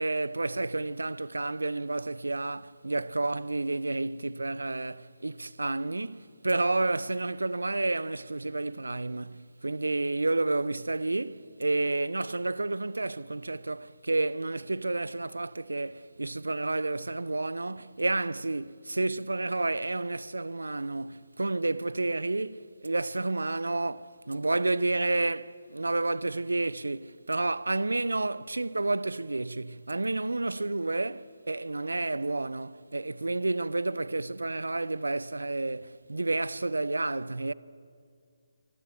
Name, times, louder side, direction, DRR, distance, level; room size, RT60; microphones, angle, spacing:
voice 1, 0.0-37.5, right 2 dB, 75° right, 0.7 m, -30 dB
26.5 x 21.5 x 7.0 m
figure-of-eight pair, 140°, 0 cm